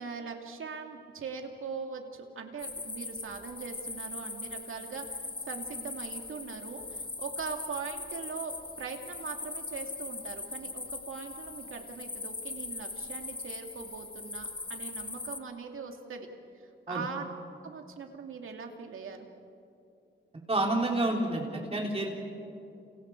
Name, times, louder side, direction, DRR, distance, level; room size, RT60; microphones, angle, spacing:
voice 1, 0.0-16.3 16.6-17.3 17.6-19.3, right 5 dB, 80° right, 3 dB, 2.5 m, -41 dB
sound 1, 2.6-15.4, left 3 dB, 25° left, 1.2 m, -40 dB
voice 2, 20.5-22.1, right 2 dB, 30° right, 0 dB, 3.3 m, -29 dB
30.0 x 29.5 x 4.6 m, 2.6 s
wide cardioid pair, 105°, 21 cm